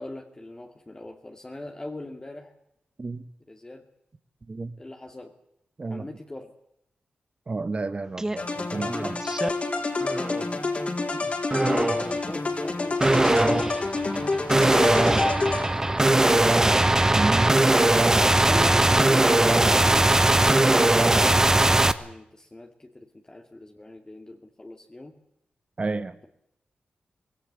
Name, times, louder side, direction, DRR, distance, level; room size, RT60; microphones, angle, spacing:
voice 1, 0.0-2.5 3.5-3.8 4.8-5.3 5.9-6.5 9.7-10.7 11.9-16.6 18.4-25.1, left 2 dB, 25° left, 2.4 m, -41 dB
voice 2, 7.5-9.2 11.1-11.3 17.1-17.5 25.8-26.2, right 3 dB, 40° right, 1.6 m, -31 dB
sound 1, 8.2-8.4 8.8-9.5 10.0-10.4 11.5-12.1 13.0-21.9, right 2 dB, 20° right, 1.2 m, -20 dB
sound 2, 8.4-16.1, left 3 dB, 45° left, 4.5 m, -28 dB
19.0 x 17.5 x 9.9 m
cardioid pair, 75°, 3 cm